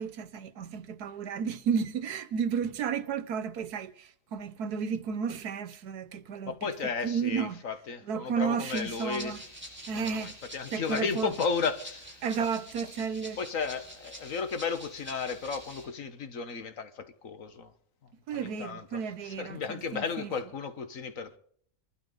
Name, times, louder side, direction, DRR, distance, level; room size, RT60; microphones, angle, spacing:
voice 1, 0.0-6.7 7.0-7.6 8.1-9.4 9.9-10.3 10.7-11.3 12.2-13.4 18.3-20.3, right 6 dB, 80° right, 1.5 m, -32 dB
voice 2, 6.4-9.4 9.9-12.5 13.4-17.7 18.3-21.4, left 5 dB, 60° left, 1.6 m, -34 dB
Rattle (instrument), 8.7-15.8, right 1 dB, 5° right, 8.0 m, -46 dB
25.5 x 12.5 x 3.8 m
omnidirectional pair, 1.6 m